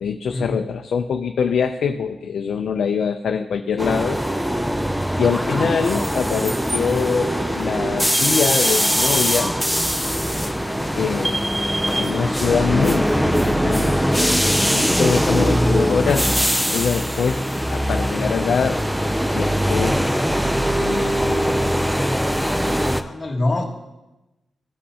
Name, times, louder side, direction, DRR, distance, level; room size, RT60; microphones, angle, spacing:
voice 1, 0.0-4.2 5.2-9.5 11.0-11.5 12.0-16.3 16.7-17.4 17.7-18.8 19.3-20.0 20.8-21.5, left 6 dB, 70° left, 5 dB, 0.4 m, -24 dB
sound 1, 3.8-23.0, equal, ahead, 0.4 m, -21 dB
voice 2, 10.7-11.2 22.9-23.6, left 2 dB, 25° left, -1 dB, 1.4 m, -25 dB
15.5 x 5.3 x 2.8 m, 1.0 s
wide cardioid pair, 145°, 0 cm